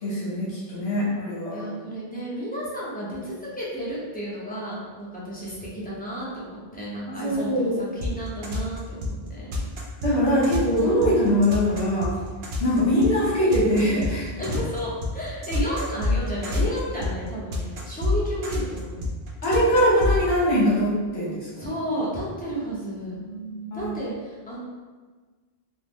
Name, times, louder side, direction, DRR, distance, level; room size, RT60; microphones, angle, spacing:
voice 1, 0.0-1.6 7.1-7.7 10.0-12.1 12.6-14.3 19.4-21.7 23.1-23.9, equal, 75° left, -8 dB, 1.1 m, -22 dB
voice 2, 1.5-9.6 12.6-12.9 14.4-19.1 21.6-23.1 23.7-24.6, equal, 10° left, -8 dB, 0.6 m, -32 dB
sound 1, 8.0-20.2, left 3 dB, 80° right, 0.9 m, -26 dB
3.6 x 2.1 x 3.0 m, 1.4 s
omnidirectional pair, 1.1 m